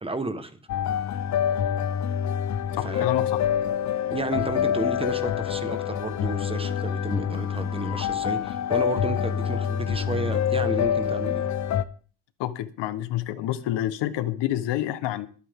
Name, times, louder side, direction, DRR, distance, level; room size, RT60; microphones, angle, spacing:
voice 1, 0.0-0.5 2.8-3.1 4.0-11.5, right 2 dB, 10° right, 1.4 m, -32 dB
sound 1, 0.7-11.8, left 9 dB, 40° left, 0.9 m, -26 dB
voice 2, 2.7-3.4 12.4-15.3, left 13 dB, 65° left, 1.3 m, -28 dB
23.5 x 9.1 x 3.7 m
cardioid pair, 145°, 45 cm